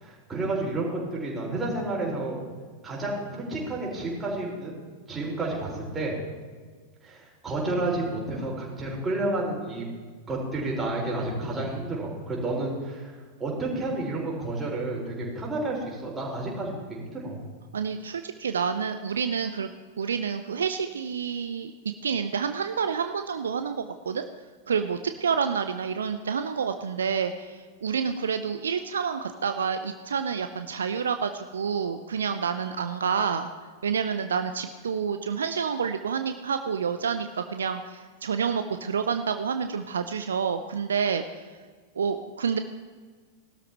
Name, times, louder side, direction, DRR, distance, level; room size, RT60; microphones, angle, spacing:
voice 1, 0.0-2.4 2.8-4.8 5.1-6.2 7.0-9.9 10.3-17.4, right 2 dB, 15° right, -4 dB, 4.7 m, -30 dB
voice 2, 17.7-19.7 20.0-21.7 22.0-24.3 24.7-33.5 33.8-41.5 42.0-42.6, right 6 dB, 70° right, 9 dB, 0.5 m, -28 dB
19.5 x 12.5 x 3.0 m, 1.5 s
figure-of-eight pair, 90°, 0 cm